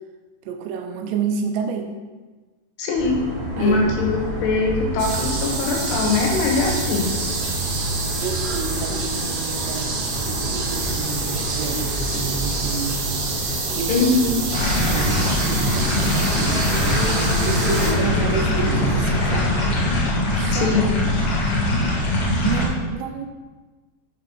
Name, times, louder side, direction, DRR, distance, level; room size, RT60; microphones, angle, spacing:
voice 1, 0.5-1.9 3.6-3.9 6.8-7.4 8.2-9.9 10.2-14.0 14.2-14.3 14.8-17.1 17.4-19.6 20.3-20.7 22.4-23.3, right 5 dB, 80° right, 5 dB, 2.9 m, -29 dB
voice 2, 2.8-3.2 3.6-7.1 13.9-14.4 20.5-21.0, left 3 dB, 75° left, 0 dB, 3.2 m, -21 dB
sound 1, 2.9-19.9, right 1 dB, 20° right, 1.1 m, -28 dB
sound 2, 5.0-17.9, right 4 dB, 65° right, 2.6 m, -28 dB
sound 3, 14.5-22.7, left 1 dB, 55° left, 1.6 m, -22 dB
6.9 x 6.0 x 6.0 m, 1.3 s
omnidirectional pair, 5.1 m